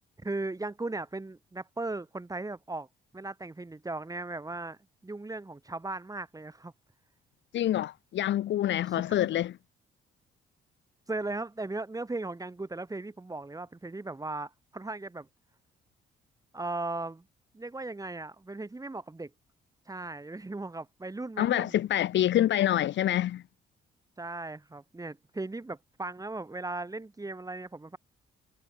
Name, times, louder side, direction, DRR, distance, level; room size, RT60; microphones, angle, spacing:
voice 1, 0.2-2.9 3.1-4.8 5.0-6.7 8.9-9.3 11.1-15.3 16.5-17.3 17.5-19.3 19.9-21.8 24.2-28.0, right 2 dB, 15° right, 5.1 m, -37 dB
voice 2, 7.5-9.6 21.4-23.4, left 12 dB, 65° left, 0.9 m, -26 dB
cardioid pair, 90°, 20 cm